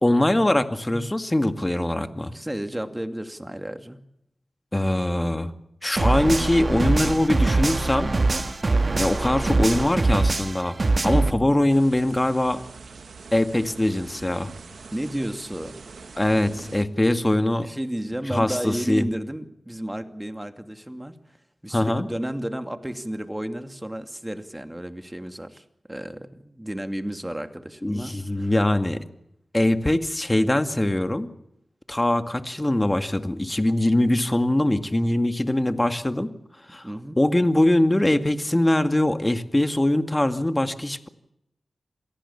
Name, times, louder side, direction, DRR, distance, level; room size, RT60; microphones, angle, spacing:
voice 1, 0.0-2.3 4.7-5.5 5.8-8.2 9.0-10.8 11.0-12.6 13.3-14.5 16.2-17.7 18.3-19.1 21.7-22.1 27.8-29.0 29.5-31.3 31.9-36.3 36.7-36.8 37.2-41.1, left 1 dB, 20° left, 9 dB, 2.1 m, -22 dB
voice 2, 2.2-4.0 14.9-15.8 17.6-21.4 21.6-28.5 36.8-37.2, right 1 dB, 15° right, 8 dB, 2.5 m, -32 dB
sound 1, 6.0-11.3, right 3 dB, 45° right, 1.5 m, -23 dB
sound 2, 11.7-16.8, right 4 dB, 80° right, 1.6 m, -43 dB
27.5 x 18.0 x 7.3 m, 0.80 s
cardioid pair, 55°, 0 cm